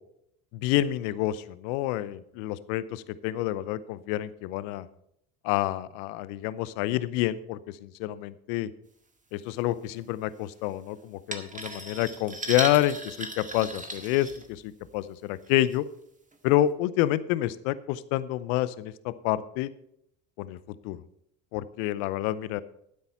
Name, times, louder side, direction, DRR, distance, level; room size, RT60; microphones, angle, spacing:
voice 1, 0.6-4.9 5.4-8.7 9.3-15.8 16.4-19.7 20.4-20.6 20.8-21.0 21.5-22.6, left 14 dB, 70° left, 17 dB, 0.8 m, -28 dB
sound 1, 11.3-14.9 15.5-15.8 16.3-16.4, right 2 dB, 20° right, 1.8 m, -36 dB
12.0 x 9.8 x 4.3 m, 0.75 s
hypercardioid pair, 65°, 41 cm